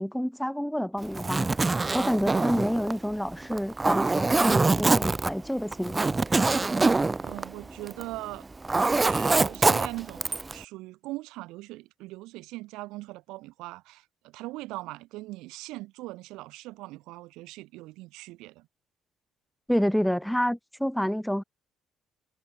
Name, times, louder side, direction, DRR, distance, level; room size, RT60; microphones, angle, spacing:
voice 1, 0.0-1.5 1.9-6.1 19.7-21.4, equal, ahead, 1.1 m, -28 dB
Zipper (clothing), 1.0-8.1 8.4-10.6, right 3 dB, 25° right, 0.3 m, -24 dB
voice 2, 7.2-8.5 9.0-18.7, right 20 dB, 75° right, 3.5 m, -40 dB
hypercardioid pair, 55°, 0 cm